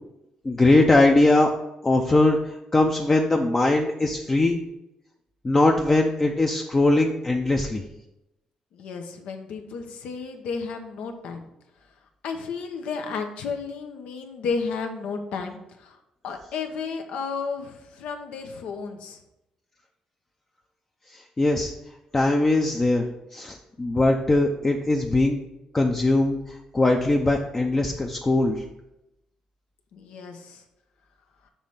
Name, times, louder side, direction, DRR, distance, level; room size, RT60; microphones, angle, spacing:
voice 1, 0.4-1.5 1.8-4.6 5.4-7.8 21.1-21.7 22.1-25.4 25.7-28.6, left 2 dB, 20° left, 1 dB, 0.5 m, -21 dB
voice 2, 8.7-11.5 12.2-16.0 16.2-19.2 29.9-30.6, left 5 dB, 85° left, 4 dB, 0.8 m, -33 dB
6.9 x 3.2 x 5.6 m, 0.90 s
cardioid pair, 115°, 2 cm